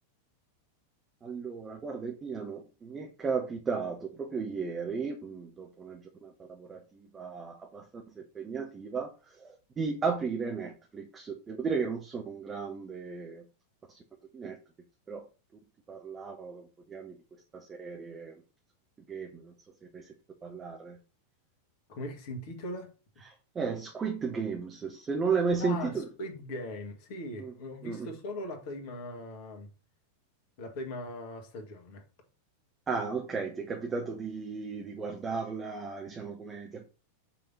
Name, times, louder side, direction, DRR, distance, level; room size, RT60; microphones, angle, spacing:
voice 1, 1.2-8.0 8.3-9.1 9.4-13.4 13.9-14.0 14.3-14.6 15.1-15.2 15.9-17.2 17.5-18.3 19.1-19.5 19.9-20.1 20.4-21.0 23.2-26.1 27.4-27.5 27.8-28.1 32.9-36.9, right 5 dB, 20° right, 1.0 m, -35 dB
voice 2, 21.9-22.9 25.6-29.7 30.6-32.0, left 1 dB, 45° left, 1.8 m, -40 dB
5.7 x 3.5 x 5.6 m
figure-of-eight pair, 90°, 0 cm